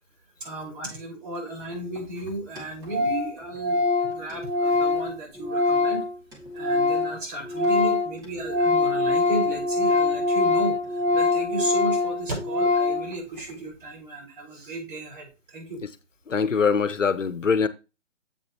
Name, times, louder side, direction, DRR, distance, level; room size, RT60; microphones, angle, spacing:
voice 1, 0.4-6.1 6.5-15.8, right 2 dB, 45° right, 4.8 m, -34 dB
Organ, 2.0-2.1 2.3-2.4 2.6-2.7 2.9-3.3 3.6-7.2 7.4-13.1, left 3 dB, 10° right, 1.6 m, -23 dB
voice 2, 16.3-17.7, left 5 dB, 85° left, 1.0 m, -22 dB
7.9 x 7.0 x 2.9 m
figure-of-eight pair, 145°, 37 cm